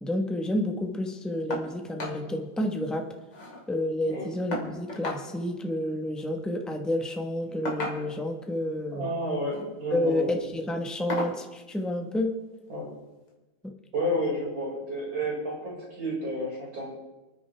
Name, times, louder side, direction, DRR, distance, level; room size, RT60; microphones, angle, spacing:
voice 1, 0.0-3.1 3.7-9.1 9.9-12.4 13.6-13.7, left 1 dB, ahead, 3 dB, 0.6 m, -30 dB
sound 1, 1.5-1.7 2.0-2.2 2.6-2.7 2.9-3.6 4.5-5.2 6.5-6.7 7.6-8.3 9.3-9.7 10.1-10.3 11.1-11.4 12.7-12.8 13.3-13.4, left 1 dB, 60° left, 3.2 m, -34 dB
voice 2, 8.9-10.3 12.7-12.9 13.9-16.9, equal, 75° right, -5 dB, 6.2 m, -31 dB
28.5 x 9.8 x 3.4 m, 1.1 s
omnidirectional pair, 2.2 m